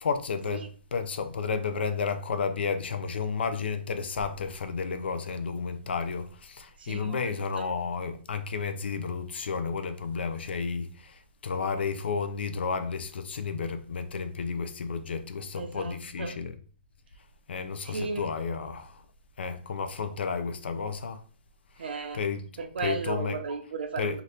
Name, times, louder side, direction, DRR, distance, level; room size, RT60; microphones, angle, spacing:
voice 1, 0.0-16.5 17.5-19.0 19.4-21.2 22.1-22.5 22.8-23.4 24.0-24.2, left 5 dB, 70° left, 0.5 m, -32 dB
voice 2, 6.8-7.7 15.6-16.4 17.8-18.3 21.8-22.2 22.6-24.2, right 4 dB, 65° right, 0.6 m, -35 dB
2.8 x 2.5 x 3.3 m
hypercardioid pair, 170°, 6 cm